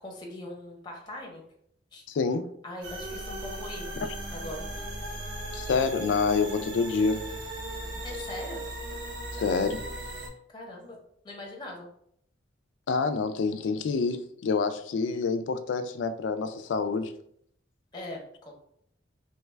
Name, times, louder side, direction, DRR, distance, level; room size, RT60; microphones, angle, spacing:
voice 1, 0.0-1.4 1.9-2.0 2.6-3.9 4.3-4.7 8.0-8.6 10.5-11.0 11.2-11.9 17.9-18.5, left 1 dB, 25° left, 0 dB, 0.6 m, -41 dB
voice 2, 2.1-2.5 5.5-7.2 9.3-9.8 12.9-17.1, left 4 dB, 75° left, 10 dB, 0.3 m, -27 dB
sound 1, 2.8-10.3, right 1 dB, 90° right, 1.0 m, -37 dB
3.2 x 2.2 x 3.2 m, 0.68 s
head